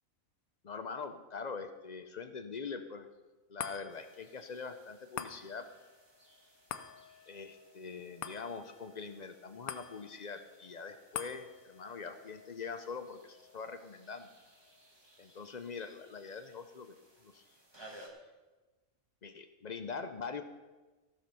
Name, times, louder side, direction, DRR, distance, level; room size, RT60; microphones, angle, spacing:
voice 1, 0.6-3.1 3.5-5.6 7.3-14.3 15.2-16.9 17.2-17.4 19.2-20.4, left 5 dB, 50° left, 9 dB, 0.5 m, -43 dB
sound 1, 3.6-16.2 16.6-16.7, left 9 dB, 80° left, 1.2 m, -49 dB
sound 2, 3.9-18.1, right 1 dB, 20° right, 1.4 m, -61 dB
14.5 x 6.9 x 5.6 m, 1.2 s
omnidirectional pair, 1.5 m